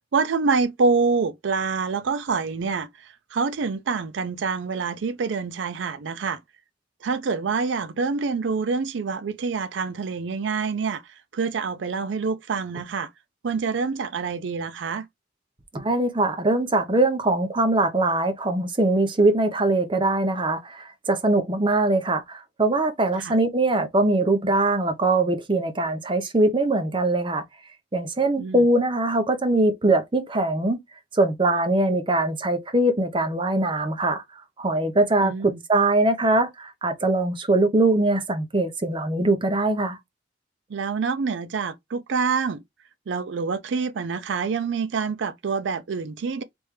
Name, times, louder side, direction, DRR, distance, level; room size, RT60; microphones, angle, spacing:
voice 1, 0.1-6.4 7.0-11.0 11.3-13.1 13.4-15.0 23.2-23.3 28.4-28.7 35.2-35.6 40.7-42.6 43.1-46.4, right 5 dB, 70° right, 0.4 m, -26 dB
voice 2, 15.7-27.4 27.9-30.8 31.1-34.2 34.6-40.0, right 2 dB, 25° right, 0.7 m, -22 dB
3.5 x 3.1 x 3.1 m
head